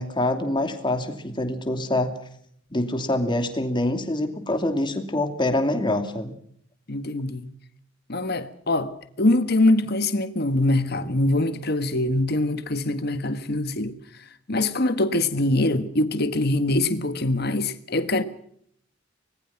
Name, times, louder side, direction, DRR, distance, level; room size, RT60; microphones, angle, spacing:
voice 1, 0.0-2.1 2.7-6.4, left 1 dB, 25° left, 2.7 m, -25 dB
voice 2, 6.9-7.5 8.1-13.9 14.5-18.2, left 2 dB, 55° left, 1.6 m, -23 dB
25.0 x 20.0 x 5.9 m
head